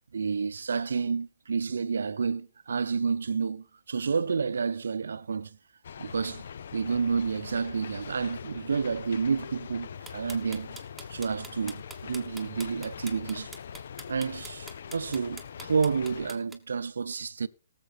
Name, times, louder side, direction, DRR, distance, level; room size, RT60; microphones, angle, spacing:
voice 1, 0.1-5.6 6.0-6.4 6.7-10.8 11.1-13.5 14.1-17.5, right 5 dB, 60° right, 0.6 m, -30 dB
sound 1, 5.8-16.3, left 7 dB, 55° left, 0.5 m, -43 dB
sound 2, 10.1-16.6, right 2 dB, ahead, 1.4 m, -44 dB
18.5 x 7.4 x 4.4 m
figure-of-eight pair, 130°, 0 cm